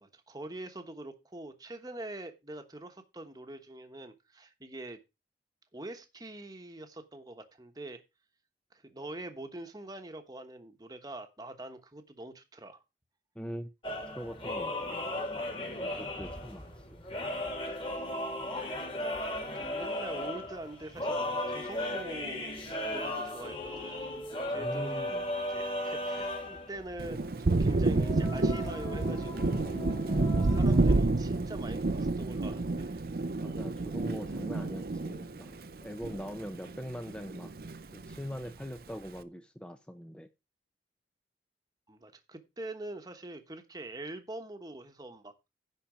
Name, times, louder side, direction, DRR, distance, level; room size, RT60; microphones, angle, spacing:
voice 1, 0.0-5.0 5.7-8.0 8.7-12.8 19.0-19.2 19.5-22.6 22.9-24.1 24.5-29.7 30.4-33.0 41.9-45.3, right 1 dB, 20° right, 1.1 m, -44 dB
voice 2, 13.4-13.7 14.2-15.6 15.8-17.0 24.5-25.2 33.4-37.5 37.9-40.3, equal, 5° left, 0.6 m, -42 dB
sound 1, 13.8-31.0, left 1 dB, 30° left, 2.7 m, -36 dB
Thunder, 27.0-36.8 37.1-38.2, right 2 dB, 55° right, 0.6 m, -29 dB
10.5 x 4.3 x 7.2 m
head